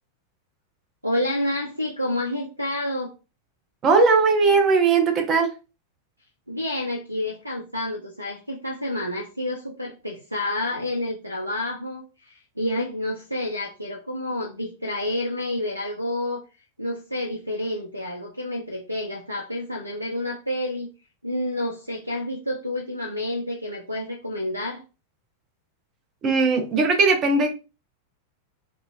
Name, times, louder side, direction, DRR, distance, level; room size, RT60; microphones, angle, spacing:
voice 1, 1.0-3.1 6.5-16.4 16.8-20.9 21.2-24.8, left 1 dB, 85° right, 0.4 m, -29 dB
voice 2, 3.8-5.5 26.2-27.5, right 4 dB, 30° right, 0.7 m, -19 dB
2.9 x 2.5 x 2.4 m
figure-of-eight pair, 90°, 0 cm